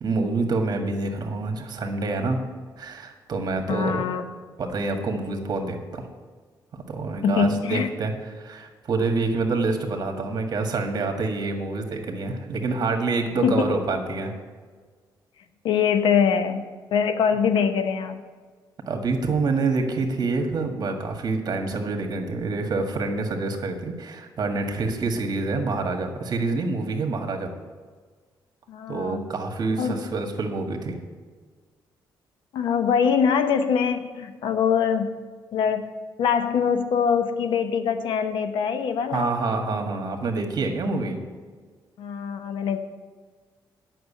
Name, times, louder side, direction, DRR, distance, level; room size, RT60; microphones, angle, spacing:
voice 1, 0.0-2.4 2.8-4.0 4.6-6.0 6.7-14.3 18.9-27.5 28.9-31.0 39.1-41.2, right 3 dB, 55° right, 4 dB, 1.7 m, -27 dB
voice 2, 3.7-4.3 7.2-7.9 13.4-13.7 15.6-16.6 16.9-18.2 28.7-29.3 29.8-30.1 32.5-35.2 35.5-35.9 36.2-39.3 42.0-42.8, left 7 dB, 90° left, 9 dB, 0.9 m, -23 dB
9.3 x 6.2 x 8.5 m, 1.5 s
cardioid pair, 100°, 8 cm